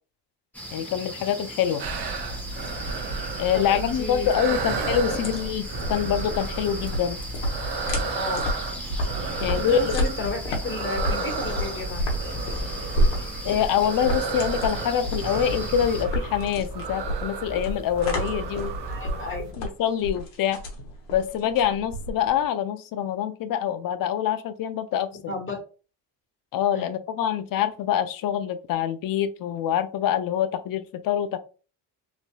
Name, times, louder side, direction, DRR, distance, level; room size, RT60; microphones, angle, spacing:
sound 1, 0.5-16.0, equal, 5° left, 1.0 m, -38 dB
voice 1, 0.7-1.8 3.4-7.2 9.4-9.9 10.2-10.3 13.4-18.7 19.6-20.6 21.1-25.3 26.5-31.4, left 9 dB, 50° left, 11 dB, 0.5 m, -25 dB
sound 2, 1.8-19.5, right 3 dB, 60° right, 0.8 m, -32 dB
voice 2, 3.5-4.3 5.1-5.2 8.1-8.5 9.5-12.1 18.9-19.5 25.3-25.5 26.7-27.0, left 3 dB, 25° left, 2 dB, 1.3 m, -32 dB
sound 3, 5.2-22.5, left 1 dB, 75° left, 1.0 m, -31 dB
3.1 x 2.5 x 2.2 m, 0.36 s
supercardioid pair, 70°, 46 cm